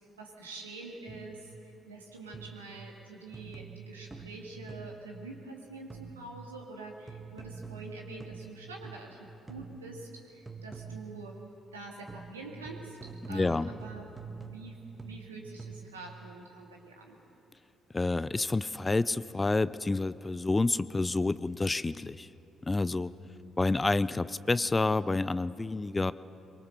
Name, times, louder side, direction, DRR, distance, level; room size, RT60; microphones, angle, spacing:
voice 1, 0.2-9.2 9.5-11.3 11.7-14.1 14.4-14.8 15.0-17.2 23.2-23.5, right 3 dB, 85° right, 0 dB, 2.4 m, -46 dB
sound 1, 1.1-1.5 2.3-2.8 3.3-5.1 5.9-6.4 7.1-9.2 9.5-10.0 10.5-11.2 12.1-16.1, right 5 dB, 20° right, 1.6 m, -46 dB
voice 2, 13.3-13.7 17.9-22.3 22.7-23.1 23.6-26.1, left 3 dB, 20° left, 17 dB, 0.6 m, -28 dB
23.5 x 23.5 x 6.8 m, 2.9 s
figure-of-eight pair, 45°, 0 cm